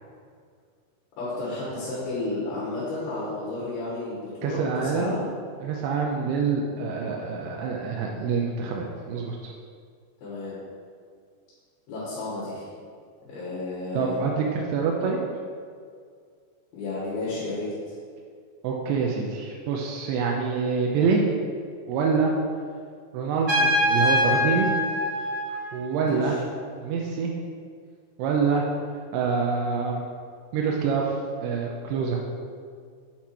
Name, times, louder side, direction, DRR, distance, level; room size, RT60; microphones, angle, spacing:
voice 1, 1.2-5.3 10.2-10.6 11.9-12.7 13.2-14.2 16.7-17.7 26.0-26.4, left 2 dB, 70° left, -8 dB, 3.2 m, -32 dB
voice 2, 4.4-5.2 5.6-9.5 13.9-15.2 18.6-21.2 21.9-22.3 23.1-24.7 25.7-26.4 26.8-27.3 28.2-28.7 29.1-30.0 30.5-32.2, right 5 dB, 90° right, -1 dB, 2.7 m, -26 dB
Trumpet, 23.5-26.1, left 1 dB, 35° right, 1.5 m, -24 dB
7.7 x 4.6 x 4.3 m, 2.1 s
omnidirectional pair, 4.5 m